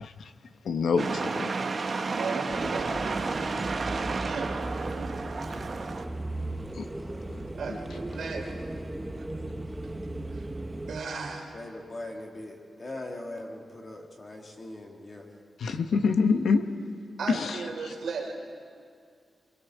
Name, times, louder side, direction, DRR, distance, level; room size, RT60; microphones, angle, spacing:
voice 1, 0.6-1.5 3.4-3.5 6.8-6.9 15.6-16.7 17.3-17.6 17.8-17.9, left 5 dB, 80° left, 8 dB, 1.1 m, -25 dB
sound 1, 1.0-6.0, right 4 dB, 40° right, 0.9 m, -31 dB
voice 2, 2.1-3.8 4.2-5.3 7.5-8.5 10.3-10.5 10.9-11.5 17.2-18.3, right 4 dB, 80° right, 1 dB, 3.1 m, -36 dB
sound 2, 2.5-11.0, right 1 dB, 10° right, 0.9 m, -37 dB
voice 3, 11.1-15.2, left 1 dB, 30° left, 1 dB, 2.0 m, -41 dB
25.0 x 23.0 x 4.8 m, 2.2 s
wide cardioid pair, 165°, 0 cm